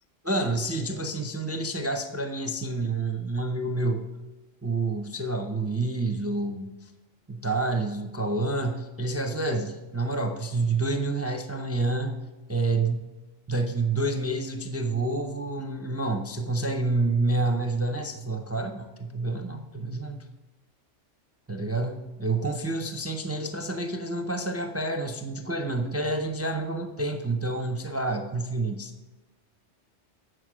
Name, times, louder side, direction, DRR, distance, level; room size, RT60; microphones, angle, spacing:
voice 1, 0.3-4.1 4.6-6.9 7.3-12.2 12.5-13.1 13.5-20.2 21.5-28.9, right 2 dB, 20° right, 5 dB, 0.4 m, -28 dB
7.9 x 6.3 x 6.0 m, 1.1 s
omnidirectional pair, 1.2 m